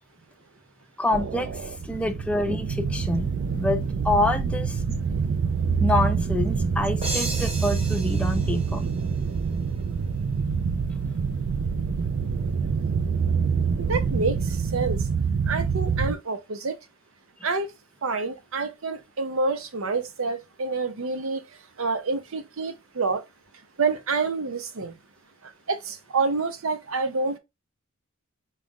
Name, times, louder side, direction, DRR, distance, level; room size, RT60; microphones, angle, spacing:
voice 1, 1.0-5.0 5.8-8.8, left 2 dB, 5° left, 0.4 m, -27 dB
sound 1, 1.1-16.1, right 5 dB, 55° right, 0.3 m, -26 dB
sound 2, 7.0-9.7, right 2 dB, 30° right, 1.0 m, -35 dB
voice 2, 13.8-15.0 15.5-16.8 17.4-17.7 18.0-21.4 21.8-23.2 23.8-24.9 25.7-27.4, right 4 dB, 80° right, 0.7 m, -27 dB
4.1 x 2.4 x 3.6 m
head